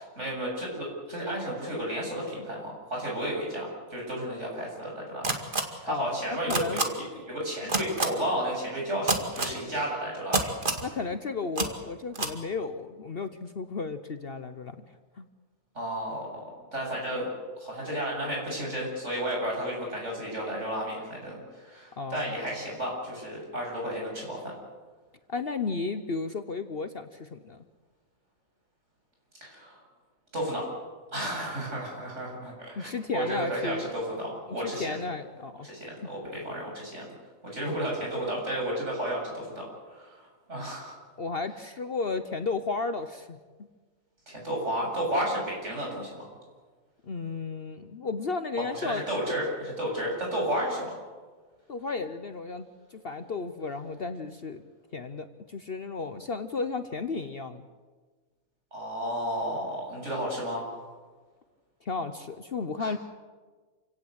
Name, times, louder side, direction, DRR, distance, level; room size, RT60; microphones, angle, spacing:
voice 1, 0.0-5.2 5.8-10.5 15.7-16.3 16.7-17.3 17.6-24.5 29.4-29.8 30.3-30.7 31.1-35.0 35.6-37.1 37.5-41.0 44.3-46.3 48.8-51.0 58.7-60.8 62.8-62.9, equal, 55° right, -2 dB, 8.1 m, -32 dB
sound 1, 5.2-5.6 6.5-6.8 7.7-8.1 9.1-9.5 10.3-10.8 11.6-11.7 12.1-12.3, right 3 dB, 35° right, 2.3 m, -26 dB
voice 2, 5.9-6.8 10.8-14.8 15.2-15.3 22.0-22.3 25.3-27.6 32.8-33.9 34.5-35.7 41.2-43.7 47.0-49.0 51.7-54.6 54.9-57.7 61.8-63.0, left 4 dB, 45° left, 9 dB, 1.1 m, -33 dB
28.0 x 17.5 x 8.2 m, 1.4 s
omnidirectional pair, 1.5 m